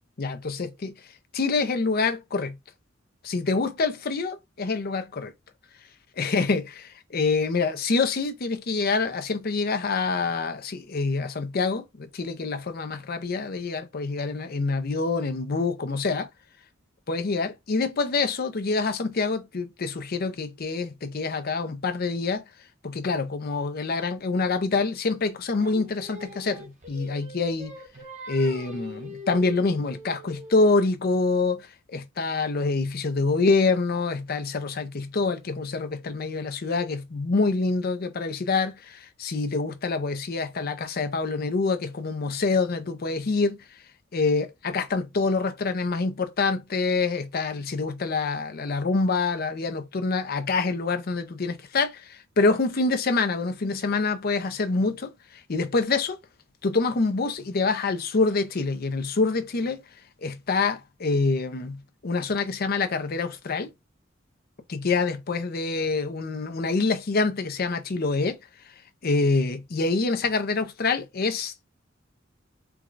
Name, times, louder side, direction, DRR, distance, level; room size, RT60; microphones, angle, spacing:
voice 1, 0.2-0.9 1.3-2.5 3.2-5.3 6.2-16.3 17.1-22.4 22.8-27.7 28.3-31.6 31.9-43.6 44.1-55.1 55.5-56.2 56.6-59.8 60.2-63.7 64.7-68.4 69.0-71.7, left 3 dB, 50° left, 0.6 m, -26 dB
Singing, 25.6-30.8, left 1 dB, 35° right, 0.9 m, -42 dB
4.6 x 2.3 x 2.5 m
head